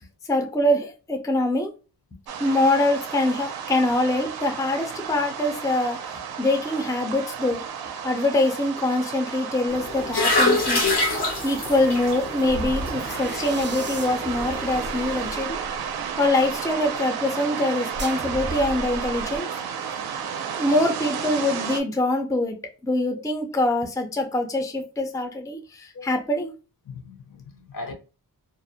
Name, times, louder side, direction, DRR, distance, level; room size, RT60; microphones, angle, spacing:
voice 1, 0.3-1.7 2.4-6.1 6.4-7.6 8.0-10.8 11.4-15.6 16.2-19.5 20.6-22.6 22.8-26.5, left 1 dB, 10° left, 0.4 m, -24 dB
sound 1, 2.3-21.8, right 7 dB, 70° right, 0.5 m, -33 dB
sound 2, 9.7-15.3, left 2 dB, 85° left, 1.0 m, -27 dB
sound 3, 10.8-10.9 12.4-16.5 17.9-19.4, right 1 dB, 30° right, 0.7 m, -35 dB
voice 2, 25.9-26.3 26.8-27.9, left 3 dB, 60° left, 0.7 m, -39 dB
2.4 x 2.1 x 2.6 m
cardioid pair, 65°, 38 cm